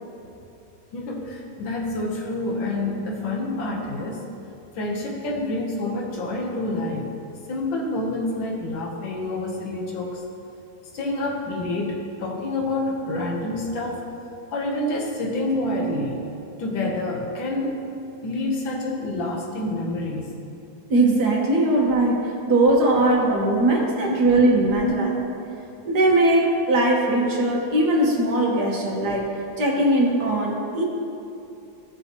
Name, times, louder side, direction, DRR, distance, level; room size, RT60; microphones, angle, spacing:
voice 1, 0.9-4.2 4.8-7.1 7.5-10.2 10.9-14.0 14.5-16.2 16.6-17.8 18.2-20.3 23.5-23.6 24.7-24.9, left 2 dB, 80° left, -1 dB, 1.8 m, -27 dB
voice 2, 20.9-25.1 25.9-29.2 29.6-30.8, right 2 dB, 60° right, -2 dB, 1.9 m, -20 dB
15.5 x 6.8 x 2.9 m, 2.8 s
omnidirectional pair, 2.1 m